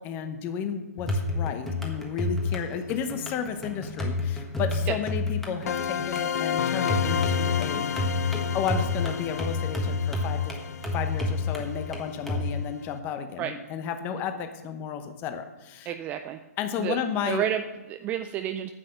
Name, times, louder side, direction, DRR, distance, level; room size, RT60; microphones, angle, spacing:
voice 1, 0.0-7.9 8.5-10.5 10.9-15.9 16.6-17.4, left 7 dB, 25° left, 8 dB, 0.8 m, -33 dB
sound 1, 1.0-12.5, left 3 dB, 5° left, 1.4 m, -30 dB
sound 2, 5.7-12.3, left 8 dB, 70° left, 0.5 m, -31 dB
voice 2, 15.9-16.4 16.8-18.7, right 10 dB, 20° right, 8 dB, 0.3 m, -31 dB
9.7 x 8.4 x 6.6 m, 1.1 s
hypercardioid pair, 150°, 9 cm